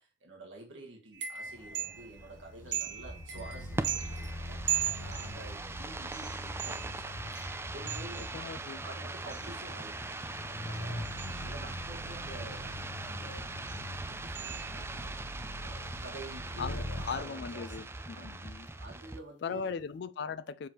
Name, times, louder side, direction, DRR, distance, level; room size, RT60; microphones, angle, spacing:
voice 1, 0.0-8.6 8.8-10.2 10.4-13.6 14.1-15.3 15.6-17.7 18.1-18.4 18.8-19.7, right 2 dB, 85° right, 1.4 m, -49 dB
sound 1, 1.1-2.3 2.7-5.7 6.1-8.5 9.3-9.6 10.1-11.8 13.7-13.9 14.4-15.1 17.0-17.2 17.5-17.9, right 11 dB, 65° right, 1.4 m, -39 dB
sound 2, 1.5-17.3, left 1 dB, 80° left, 0.9 m, -44 dB
sound 3, 1.5-19.2, right 2 dB, 15° right, 0.4 m, -41 dB
voice 2, 8.3-8.8 16.6-18.7 19.4-20.7, left 6 dB, 60° left, 0.4 m, -38 dB
6.8 x 4.7 x 3.0 m
head